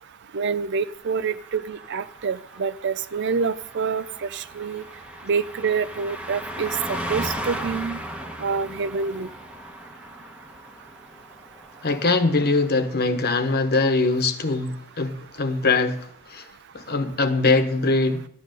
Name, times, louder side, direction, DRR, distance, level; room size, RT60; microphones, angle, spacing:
voice 1, 0.3-4.8 5.3-8.0 8.4-9.3, right 5 dB, 55° right, 0.5 m, -27 dB
Car passing by, 1.0-13.0 13.3-13.5, equal, 5° right, 1.2 m, -37 dB
voice 2, 11.8-16.4 16.7-18.2, left 3 dB, 45° left, 1.2 m, -22 dB
13.0 x 10.5 x 5.2 m
head